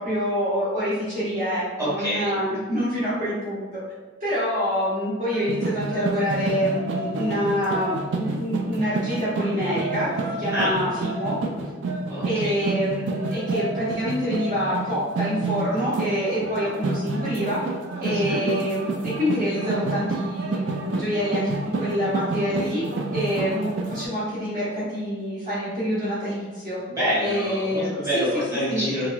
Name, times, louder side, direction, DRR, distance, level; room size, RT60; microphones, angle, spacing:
voice 1, 0.0-3.8 4.2-10.1 10.4-11.3 12.2-17.6 18.0-22.8 23.1-26.8 27.2-28.2 28.7-28.9, equal, 35° right, -12 dB, 0.8 m, -26 dB
voice 2, 1.8-2.3 10.5-10.7 12.1-12.5 18.0-18.4 26.9-29.1, equal, 15° right, -10 dB, 1.3 m, -26 dB
sound 1, 5.3-24.0, right 3 dB, 60° right, 0.3 m, -29 dB
2.9 x 2.7 x 2.3 m, 1.4 s
head